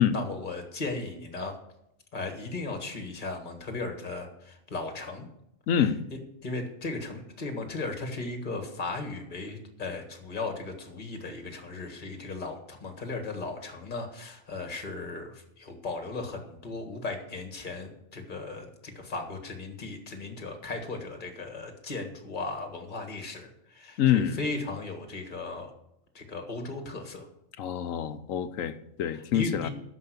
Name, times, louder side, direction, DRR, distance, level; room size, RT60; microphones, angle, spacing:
voice 1, 0.0-1.5 2.1-5.3 6.4-25.7 26.1-27.3 29.1-29.7, left 3 dB, 40° left, 1.8 m, -36 dB
voice 2, 5.7-6.0 24.0-24.4 27.6-29.7, left 9 dB, 80° left, 1.2 m, -26 dB
12.5 x 5.1 x 8.2 m
omnidirectional pair, 1.3 m